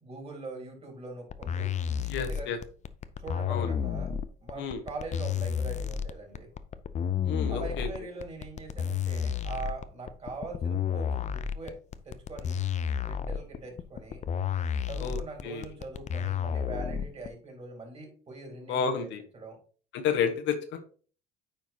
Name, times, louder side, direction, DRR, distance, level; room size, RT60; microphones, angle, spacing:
voice 1, 0.0-2.5 3.2-4.1 4.4-6.5 7.5-11.7 12.0-12.6 13.0-14.2 14.9-19.1 19.3-19.6, right 3 dB, 30° right, 0 dB, 3.6 m, -42 dB
sound 1, 1.3-17.3, left 7 dB, 35° left, 0.5 m, -31 dB
voice 2, 2.0-2.6 3.5-3.7 4.6-4.8 7.2-7.9 15.0-15.7 18.7-19.2 19.9-20.8, left 6 dB, 70° left, 5 dB, 1.2 m, -31 dB
9.1 x 4.6 x 2.8 m, 0.41 s
supercardioid pair, 85°, 20 cm